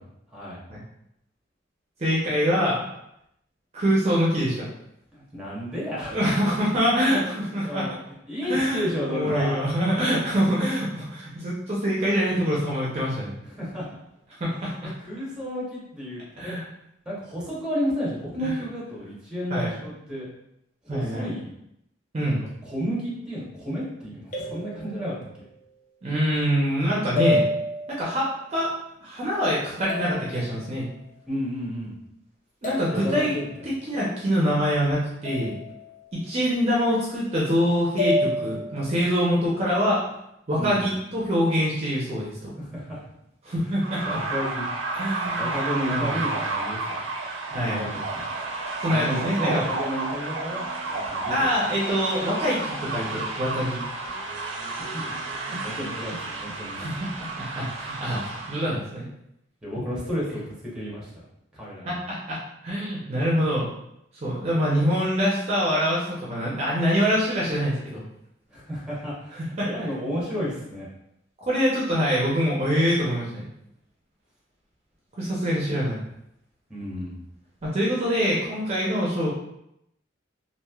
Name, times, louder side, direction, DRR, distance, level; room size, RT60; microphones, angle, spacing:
voice 1, 2.0-2.8 3.7-4.7 6.1-7.9 8.5-13.3 14.4-14.9 16.4-16.6 18.4-18.5 19.5-19.7 20.9-21.3 22.1-22.4 26.0-27.4 27.9-28.7 29.0-30.9 32.6-33.4 33.6-35.5 36.3-40.0 40.5-42.5 43.4-44.0 45.0-45.6 45.8-46.3 47.5-47.9 48.8-49.6 51.3-53.8 56.8-59.0 61.8-62.4 62.6-63.6 64.2-68.0 69.6-69.9 71.4-73.5 75.2-76.0 77.6-79.3, equal, 35° right, -5 dB, 0.6 m, -25 dB
voice 2, 5.1-6.2 7.6-7.9 8.3-9.7 13.5-13.9 14.8-16.6 17.0-20.3 20.8-21.5 22.6-25.2 31.3-32.0 32.9-33.5 40.6-40.8 42.6-43.0 44.0-44.7 45.3-46.9 47.6-48.2 48.9-51.3 54.9-55.0 55.4-56.8 59.6-61.1 61.5-61.9 68.5-70.9 76.7-77.2, equal, 5° right, -6 dB, 0.9 m, -32 dB
sound 1, 22.9-23.4 24.3-25.6 27.2-28.2 29.9-30.9 32.6-33.7 35.2-36.2 38.0-39.0, left 1 dB, 40° left, 0.6 m, -30 dB
sound 2, 43.8-58.6, right 3 dB, 90° right, 0.6 m, -31 dB
3.1 x 2.6 x 2.3 m, 0.80 s
head